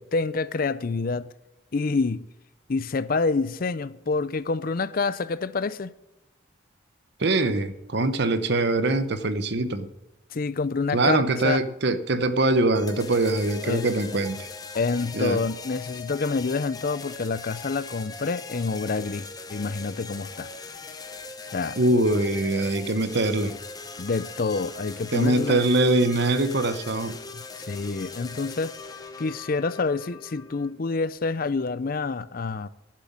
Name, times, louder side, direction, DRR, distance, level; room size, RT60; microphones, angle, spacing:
voice 1, 0.0-1.3 1.7-2.3 2.7-5.9 10.3-11.6 13.6-13.9 14.7-20.5 21.5-21.8 24.0-25.6 27.6-28.7 29.2-32.7, left 4 dB, 45° left, 0.5 m, -27 dB
voice 2, 7.2-9.9 10.9-14.5 15.1-15.4 21.8-23.5 25.1-27.2, right 2 dB, 55° right, 0.9 m, -23 dB
sound 1, 12.7-30.7, left 4 dB, 20° left, 1.0 m, -40 dB
11.0 x 7.6 x 9.5 m
head